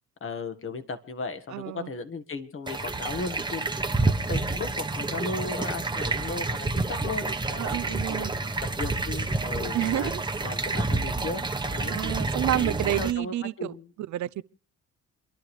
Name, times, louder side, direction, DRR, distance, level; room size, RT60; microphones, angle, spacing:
voice 1, 0.2-8.3 8.6-10.1 10.4-12.1 12.5-13.9, left 4 dB, 45° left, 1.7 m, -36 dB
voice 2, 1.5-1.9 7.6-8.3 9.7-10.2 11.9-13.7 14.1-14.4, right 13 dB, 70° right, 0.6 m, -29 dB
sound 1, 2.7-13.1, right 3 dB, 15° right, 1.1 m, -29 dB
29.0 x 11.5 x 3.3 m
cardioid pair, 90°, 30 cm